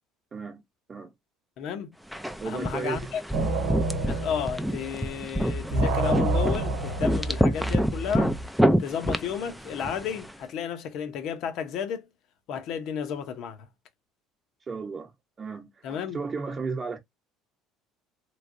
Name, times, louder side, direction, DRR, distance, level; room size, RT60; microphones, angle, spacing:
voice 1, 0.3-0.6 0.9-1.1 2.4-3.1 3.3-3.6 14.7-15.1 15.4-17.0, right 4 dB, 25° right, 0.9 m, -34 dB
voice 2, 1.6-1.9 2.4-3.2 4.0-8.4 8.8-12.1 12.5-13.7 15.8-16.2, left 7 dB, 60° left, 0.7 m, -32 dB
sound 1, 2.1-10.3, equal, ahead, 0.4 m, -28 dB
sound 2, 3.3-5.2 5.5-8.5, right 2 dB, 90° right, 0.9 m, -29 dB
3.1 x 3.1 x 2.5 m
cardioid pair, 125°, 0 cm